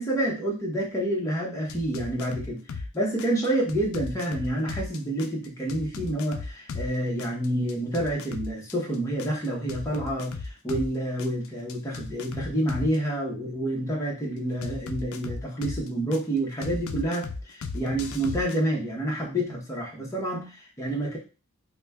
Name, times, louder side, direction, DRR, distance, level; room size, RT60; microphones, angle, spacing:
voice 1, 0.0-21.2, right 1 dB, 15° left, -3 dB, 0.8 m, -28 dB
sound 1, 1.7-2.9 3.2-6.9 7.2-10.9 11.2-13.0 14.6-16.2 16.6-18.6, left 4 dB, 75° left, 0.4 m, -36 dB
4.9 x 2.1 x 2.2 m, 0.34 s
head